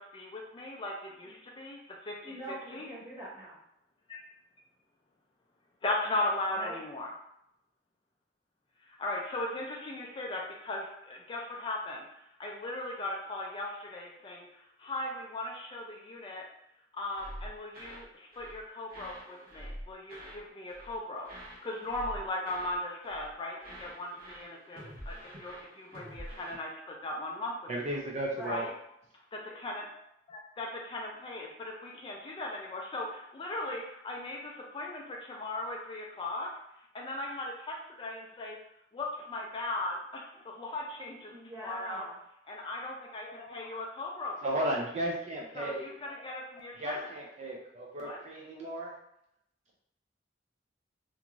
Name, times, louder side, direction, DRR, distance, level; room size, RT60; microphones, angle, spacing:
voice 1, 0.0-2.9 4.1-4.2 5.8-7.1 8.8-16.5 16.9-27.5 27.8-28.0 28.5-28.7 29.3-29.9 30.3-36.5 36.8-38.6 38.9-42.1 42.5-44.6 45.6-47.1 48.0-48.2, left 2 dB, 30° left, -1 dB, 0.3 m, -38 dB
voice 2, 2.2-3.6 6.6-6.7 28.3-28.6 41.2-42.2, right 1 dB, 15° right, -7 dB, 0.9 m, -43 dB
sound 1, 17.1-18.1 18.3-18.6 18.9-20.4 20.7-21.0 21.2-22.8 23.0-23.3 23.6-26.5, equal, 55° right, 0.8 m, -46 dB
voice 3, 27.7-28.7 44.4-45.9 46.8-48.9, right 1 dB, 40° right, -2 dB, 0.4 m, -34 dB
2.5 x 2.3 x 2.9 m, 0.78 s
head